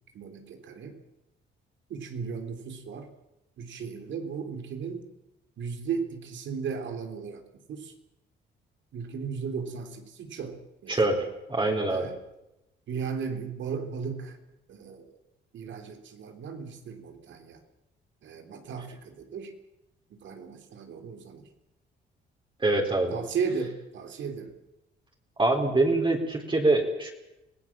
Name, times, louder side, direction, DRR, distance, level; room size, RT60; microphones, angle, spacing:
voice 1, 0.1-1.0 1.9-3.1 3.6-5.1 5.6-7.4 7.7-7.9 8.9-11.1 11.9-12.2 12.9-14.4 14.7-15.1 15.5-17.6 18.2-19.5 20.1-21.4 23.1-24.5, right 6 dB, 70° right, 6 dB, 3.4 m, -36 dB
voice 2, 10.9-12.1 22.6-23.2 25.4-27.1, right 2 dB, 25° right, 1 dB, 4.4 m, -24 dB
26.0 x 17.5 x 7.4 m, 0.91 s
cardioid pair, 90°, 20 cm